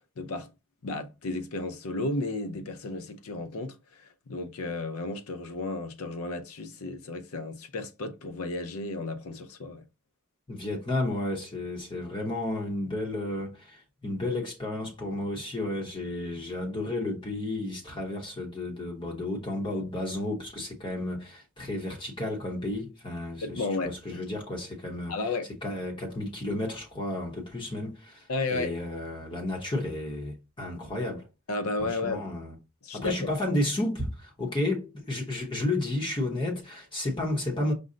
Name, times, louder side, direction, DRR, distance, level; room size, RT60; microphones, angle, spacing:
voice 1, 0.2-0.5 0.8-9.8 23.4-24.2 25.1-25.5 28.3-28.7 31.5-32.3 32.8-33.3, left 2 dB, 75° left, 0.6 m, -33 dB
voice 2, 10.5-25.3 25.6-31.3 31.8-32.5 32.9-37.7, left 1 dB, 25° left, 0.8 m, -32 dB
5.3 x 2.1 x 3.7 m
head